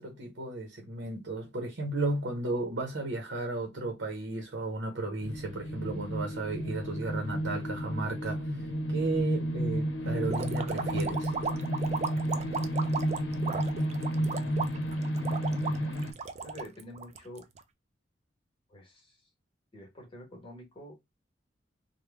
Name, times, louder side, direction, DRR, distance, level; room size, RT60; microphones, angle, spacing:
voice 1, 0.0-8.5 8.9-11.3, right 2 dB, 75° right, 0.8 m, -34 dB
sound 1, 5.2-16.1, right 1 dB, 75° left, 0.8 m, -32 dB
sound 2, 10.3-17.6, right 5 dB, 35° right, 0.4 m, -35 dB
voice 2, 14.3-15.1 16.4-17.5 18.7-19.3 19.7-21.0, left 1 dB, 30° left, 1.2 m, -48 dB
3.2 x 2.2 x 3.4 m
head